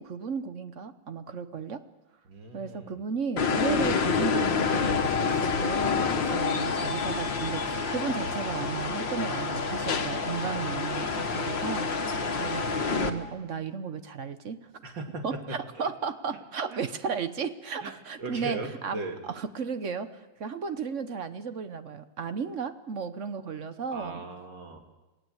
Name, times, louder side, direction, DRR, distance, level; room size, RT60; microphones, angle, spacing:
voice 1, 0.0-1.8 2.5-14.7 15.2-19.0 19.2-24.3, right 6 dB, 45° right, 11 dB, 1.2 m, -34 dB
voice 2, 2.3-3.0 6.2-6.4 12.2-12.9 14.8-15.4 15.8-15.9 16.7-16.8 17.8-17.9 18.2-19.2 23.9-24.8, right 3 dB, 70° right, 3 dB, 3.2 m, -39 dB
sound 1, 3.4-13.1, left 5 dB, 75° left, 2.2 m, -28 dB
27.5 x 17.5 x 8.0 m, 1.1 s
omnidirectional pair, 2.0 m